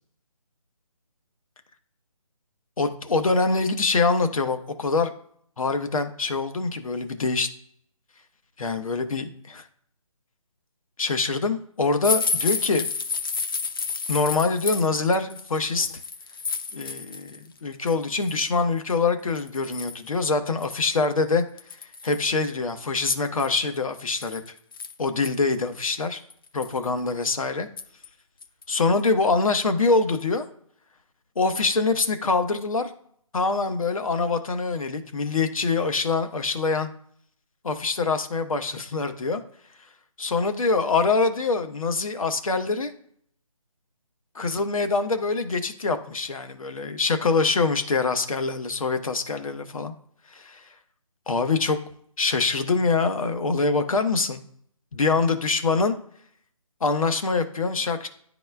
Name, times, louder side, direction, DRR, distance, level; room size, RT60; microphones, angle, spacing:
voice 1, 2.8-5.1 5.6-7.5 8.6-9.6 11.0-12.8 14.1-15.9 16.7-21.4 22.0-24.4 25.0-26.2 26.5-27.7 28.7-30.4 31.4-32.9 33.3-36.9 37.6-39.4 40.2-42.9 44.3-49.9 50.3-50.6 51.3-51.8 52.2-54.4 54.9-56.0 56.8-58.1, left 4 dB, 70° left, 8 dB, 1.0 m, -24 dB
sound 1, 12.0-17.4 17.7-18.3 18.9-19.0 19.4-20.1 20.6-20.7 21.0-21.1 21.6-22.2 23.2-25.3 25.8-25.9 26.3-26.9 27.8-28.1 28.4-28.6 29.0-29.1, left 4 dB, 40° left, 0.7 m, -30 dB
10.5 x 4.1 x 2.3 m, 0.65 s
figure-of-eight pair, 165°, 18 cm